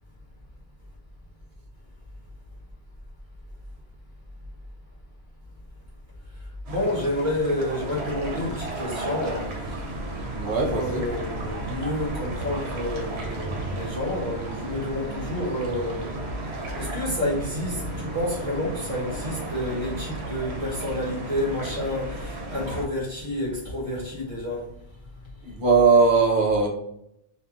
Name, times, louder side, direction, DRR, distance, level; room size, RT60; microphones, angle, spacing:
voice 1, 6.7-9.5 10.6-16.3 16.8-24.6, left 1 dB, 30° right, -4 dB, 1.2 m, -29 dB
sound 1, 6.7-22.9, right 2 dB, 85° right, 1.0 m, -34 dB
voice 2, 10.3-11.0 25.4-26.7, right 4 dB, 55° right, -1 dB, 0.8 m, -20 dB
2.6 x 2.5 x 2.4 m, 0.78 s
omnidirectional pair, 1.1 m